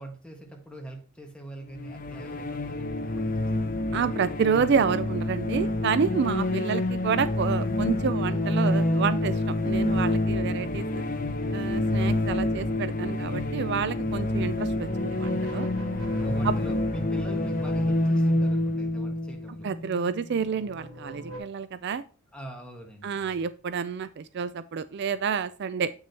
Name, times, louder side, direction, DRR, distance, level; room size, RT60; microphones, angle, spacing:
voice 1, 0.0-3.9 16.2-19.7 22.3-23.4, right 1 dB, 5° left, 1 dB, 1.6 m, -43 dB
sound 1, 1.8-20.4, left 1 dB, 40° left, 0.8 m, -27 dB
voice 2, 3.9-11.0 11.5-15.7 16.4-16.5 19.6-22.0 23.0-25.9, right 6 dB, 50° right, 14 dB, 0.4 m, -29 dB
sound 2, 14.9-19.8 20.3-21.4, equal, 80° right, 3.1 m, -42 dB
8.3 x 6.2 x 2.9 m, 0.38 s
head